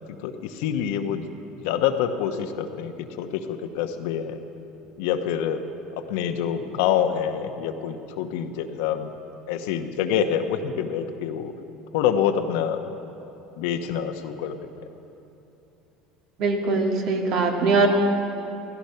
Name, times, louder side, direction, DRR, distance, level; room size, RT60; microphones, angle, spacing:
voice 1, 0.2-1.2 1.6-4.4 5.0-5.6 6.0-9.1 9.5-11.5 11.9-12.8 13.6-14.6, left 9 dB, 80° left, 7 dB, 1.1 m, -26 dB
voice 2, 16.4-17.9, right 4 dB, 60° right, 2 dB, 2.3 m, -21 dB
16.5 x 15.0 x 5.7 m, 2.9 s
supercardioid pair, 105°, 0 cm